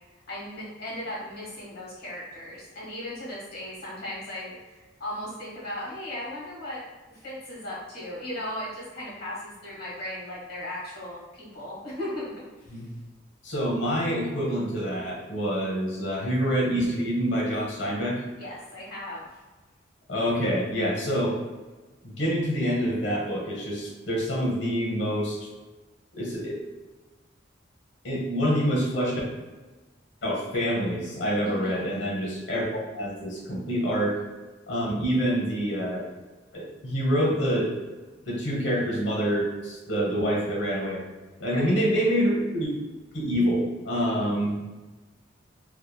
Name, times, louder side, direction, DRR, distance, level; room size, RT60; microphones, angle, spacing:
voice 1, 0.3-6.8 7.1-12.2 12.7-12.8 18.4-19.3 31.4-32.0 41.5-41.8 44.1-44.6, left 1 dB, 55° left, -5 dB, 1.2 m, -37 dB
voice 2, 13.4-18.2 20.1-21.4 22.0-25.4 26.1-26.6 28.0-29.1 30.2-34.2 34.7-36.0 36.5-37.7 38.3-41.0 41.4-42.7 43.1-44.6, equal, 75° left, -3 dB, 0.9 m, -26 dB
2.9 x 2.3 x 2.2 m, 1.2 s
head